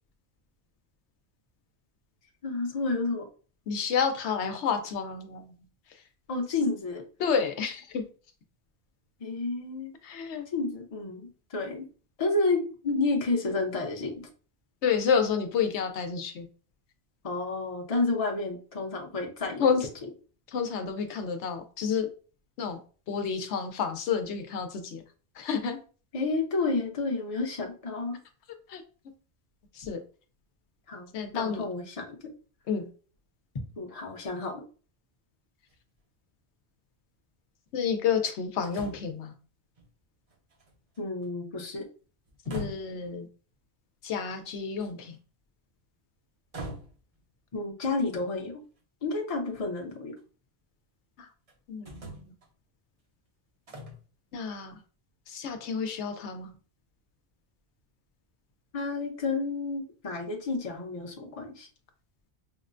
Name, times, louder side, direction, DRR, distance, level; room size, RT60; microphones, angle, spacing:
voice 1, 2.4-3.3 6.3-7.0 9.2-9.9 10.5-11.8 12.2-14.2 17.2-19.7 26.1-28.2 30.9-31.1 31.3-32.2 33.8-34.6 41.0-41.8 47.5-48.6 49.0-50.1 58.7-61.7, left 3 dB, 35° left, 1 dB, 0.8 m, -30 dB
voice 2, 3.7-5.5 7.2-8.0 10.0-10.4 14.8-16.5 19.6-19.9 20.5-22.1 22.6-22.8 23.1-25.0 25.4-25.8 28.7-28.8 29.7-30.0 31.1-31.6 32.7-32.9 37.7-39.3 42.5-43.3 44.0-45.2 51.2-51.3 51.7-52.3 54.3-54.7 55.3-56.5, left 6 dB, 90° left, 6 dB, 0.9 m, -29 dB
sound 1, 35.7-35.8 38.6-39.2 39.8-39.9 40.3-41.3 42.3-43.0 44.8-45.2 46.5-47.2 48.8-48.9 49.5-50.2 51.5-51.6 51.8-52.5 53.7-54.0, right 1 dB, 40° right, 0.7 m, -42 dB
5.4 x 2.1 x 2.5 m, 0.38 s
omnidirectional pair, 1.1 m